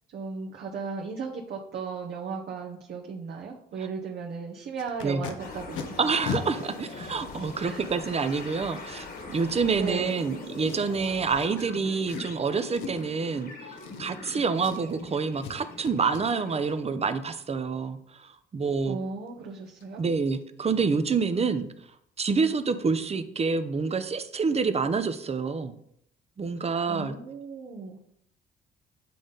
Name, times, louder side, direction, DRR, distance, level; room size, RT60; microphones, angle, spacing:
voice 1, 0.1-6.0 7.6-7.9 9.7-10.2 18.9-20.0 26.9-28.0, right 5 dB, 55° right, -1 dB, 1.0 m, -36 dB
Packing tape duct tape, 4.8-5.3 5.7-5.8 6.2-6.4 7.2-7.3 10.6-11.1 11.6-11.7 12.0-12.3 12.7-13.1 13.7-14.3 14.6-15.0 15.4-15.6 15.8-16.2 19.3-19.4 19.7-19.8 20.2-20.4 20.6-20.9 21.1-21.2, left 7 dB, 85° left, 0.8 m, -37 dB
sound 1, 5.4-16.8, left 3 dB, 50° left, 1.7 m, -42 dB
voice 2, 6.0-13.5 14.0-19.0 20.0-21.7 22.2-25.7 26.4-27.2, right 5 dB, 35° right, 11 dB, 0.7 m, -27 dB
8.4 x 3.8 x 3.9 m, 0.70 s
supercardioid pair, 70°, 19 cm